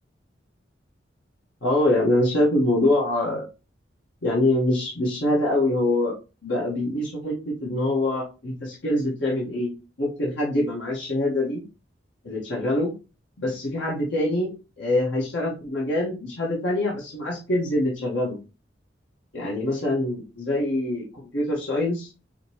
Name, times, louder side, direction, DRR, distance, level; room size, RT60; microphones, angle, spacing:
voice 1, 1.6-3.4 4.2-6.1 6.4-9.7 10.0-11.6 12.2-12.9 13.4-14.5 14.8-18.4 19.3-21.0 21.3-22.1, left 1 dB, 80° left, -4 dB, 1.2 m, -24 dB
5.0 x 2.9 x 2.9 m, 0.31 s
head